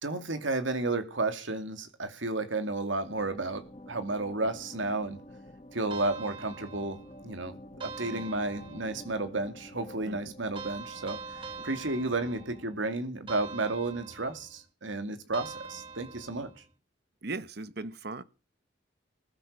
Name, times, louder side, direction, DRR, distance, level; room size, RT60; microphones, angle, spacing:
voice 1, 0.0-5.2 5.7-11.2 11.6-16.5, right 2 dB, 85° right, 2.4 m, -32 dB
sound 1, 3.1-12.6, left 1 dB, 30° left, 1.5 m, -50 dB
sound 2, 5.9-7.2 7.8-9.1 10.5-12.7 13.3-14.6 15.3-16.6, right 4 dB, 25° right, 1.7 m, -44 dB
voice 2, 8.1-8.4 10.1-10.3 11.6-11.7 17.2-18.2, right 3 dB, 55° right, 1.0 m, -39 dB
20.5 x 9.2 x 6.7 m
head